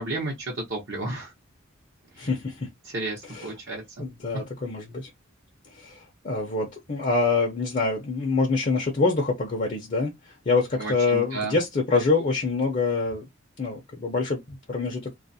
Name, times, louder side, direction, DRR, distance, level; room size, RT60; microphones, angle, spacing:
voice 1, 0.0-1.3 2.2-2.3 2.8-3.8 10.8-11.6, right 2 dB, 60° right, 0.8 m, -32 dB
voice 2, 2.2-2.7 3.2-3.5 4.0-5.1 5.7-13.3 13.6-15.1, left 3 dB, 40° left, 0.6 m, -26 dB
2.4 x 2.0 x 2.6 m
head